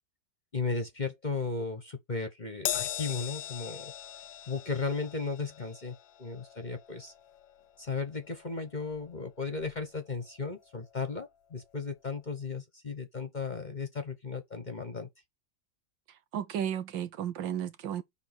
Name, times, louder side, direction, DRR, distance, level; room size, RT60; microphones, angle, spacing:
voice 1, 0.5-3.9 4.5-7.1 7.8-15.1, left 4 dB, 30° left, 1.1 m, -35 dB
Crash cymbal, 2.7-9.3 9.6-9.8 10.9-11.0, left 11 dB, 85° left, 1.5 m, -40 dB
voice 2, 16.3-18.0, right 9 dB, 85° right, 1.7 m, -33 dB
7.0 x 3.7 x 6.0 m
omnidirectional pair, 2.0 m